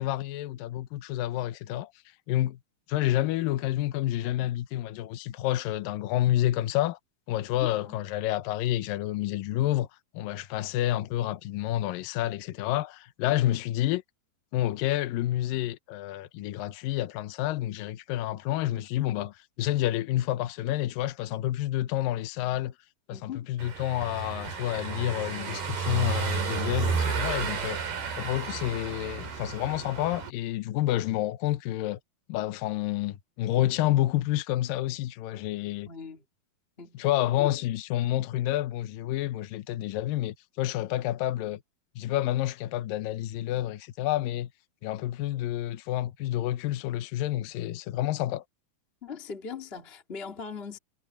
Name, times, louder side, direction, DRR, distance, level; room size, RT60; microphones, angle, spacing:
voice 1, 0.0-1.9 2.3-2.6 2.9-7.0 7.3-9.9 10.1-14.0 14.5-22.7 23.1-27.8 28.2-32.0 32.3-35.9 36.9-41.6 42.0-44.5 44.8-48.4, left 14 dB, 75° left, 2.5 m, -29 dB
voice 2, 7.6-8.0 23.1-23.5 35.9-36.2 36.8-37.0 37.4-37.6 49.0-50.8, left 6 dB, 20° left, 1.7 m, -40 dB
Car passing by / Engine, 23.6-30.3, right 5 dB, 85° right, 6.1 m, -32 dB
omnidirectional pair, 4.3 m